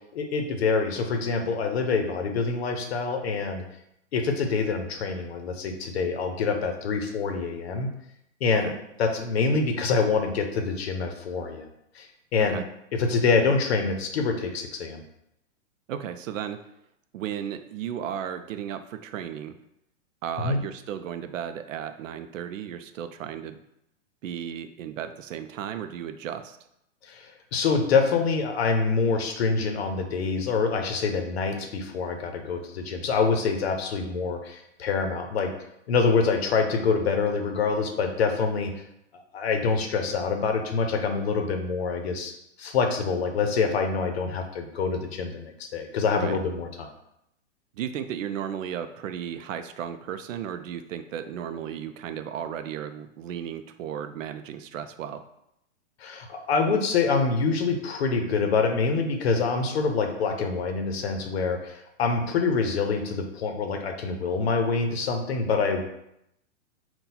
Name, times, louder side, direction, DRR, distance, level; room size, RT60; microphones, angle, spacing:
voice 1, 0.1-3.6 4.1-7.9 8.4-8.7 9.0-11.7 11.9-12.1 12.3-12.6 12.9-15.0 20.4-20.6 27.0-35.5 35.9-38.7 39.3-42.3 42.6-46.9 56.0-65.8, left 4 dB, 55° left, 5 dB, 0.7 m, -26 dB
voice 2, 15.9-16.6 17.1-19.6 20.2-23.6 24.2-26.6 46.1-46.4 47.8-55.2, right 9 dB, 85° right, 9 dB, 0.5 m, -34 dB
3.9 x 2.3 x 4.1 m, 0.80 s
hypercardioid pair, 165°, 38 cm